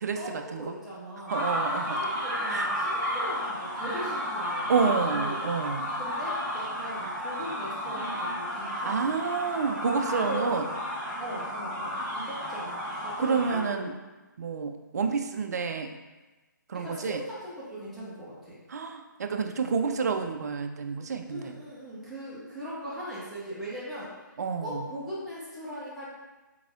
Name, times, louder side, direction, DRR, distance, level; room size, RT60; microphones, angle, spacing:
voice 1, 0.1-1.4 1.8-5.2 6.0-9.1 10.0-10.7 11.2-13.9 16.7-18.6 21.2-24.3 24.6-26.1, equal, ahead, -11 dB, 0.8 m, -39 dB
sound 1, 1.3-13.6, equal, 30° right, 1.2 m, -32 dB
voice 2, 1.3-1.9 2.5-2.7 4.7-5.9 8.8-10.6 13.2-13.9 14.4-15.9 16.7-17.2 18.7-21.5 24.4-24.8, right 5 dB, 55° right, 6 dB, 0.4 m, -29 dB
4.6 x 3.6 x 2.5 m, 1.1 s
figure-of-eight pair, 140°, 11 cm